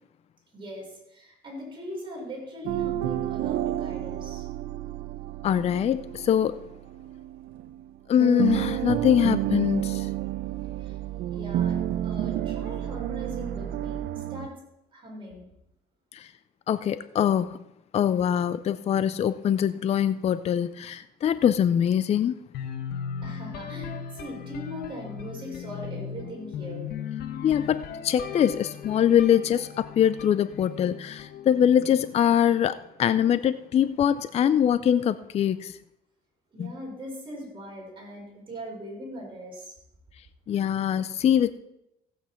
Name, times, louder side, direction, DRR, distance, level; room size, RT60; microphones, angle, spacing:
voice 1, 0.5-4.5 10.6-11.0 11.3-14.6 14.9-15.5 23.2-26.9 36.5-39.8, equal, 30° right, 5.7 m, -40 dB
sound 1, 2.6-7.9 8.2-14.5, right 12 dB, 75° right, 0.7 m, -30 dB
voice 2, 5.4-6.6 8.1-10.1 16.1-16.3 16.7-17.6 17.9-22.4 27.4-35.8 36.6-36.7 40.5-41.5, left 9 dB, 40° left, 0.4 m, -23 dB
sound 2, 22.5-32.4, left 7 dB, 70° left, 1.1 m, -38 dB
15.0 x 8.3 x 4.4 m
cardioid pair, 110°, 17 cm